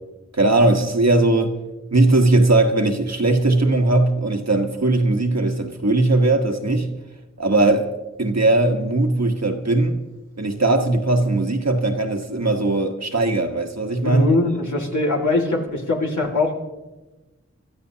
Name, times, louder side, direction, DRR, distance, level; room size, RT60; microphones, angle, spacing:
voice 1, 0.3-1.5 1.9-6.9 7.4-7.9 8.2-10.0 10.4-14.3, right 2 dB, 65° right, 1.4 m, -19 dB
voice 2, 14.0-16.5, left 2 dB, 85° left, 2.1 m, -21 dB
27.0 x 13.5 x 2.8 m
wide cardioid pair, 45°, 29 cm